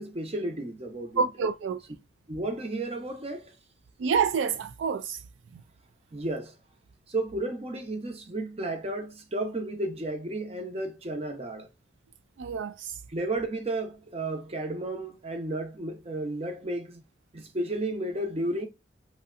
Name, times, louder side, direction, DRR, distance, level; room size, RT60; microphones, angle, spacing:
voice 1, 0.0-1.3 2.3-3.6 6.1-6.5 7.1-11.7 13.1-17.0 17.3-18.7, right 2 dB, 35° right, 0.7 m, -33 dB
voice 2, 1.2-1.8 4.0-5.2 12.4-12.9, right 5 dB, 85° right, 0.3 m, -27 dB
3.2 x 2.7 x 2.4 m
head